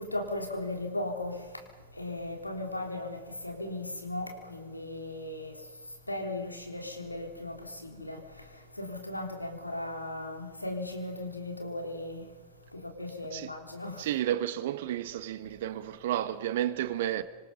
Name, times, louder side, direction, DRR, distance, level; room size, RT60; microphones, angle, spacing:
voice 1, 0.0-1.3 2.0-3.2 3.4-5.5 6.1-7.6 7.8-8.2 8.8-12.2 13.0-14.0, left 1 dB, 85° left, 3.8 m, -36 dB
voice 2, 14.0-17.2, right 12 dB, 55° right, 1.5 m, -31 dB
26.5 x 26.5 x 5.4 m
figure-of-eight pair, 90°, 0 cm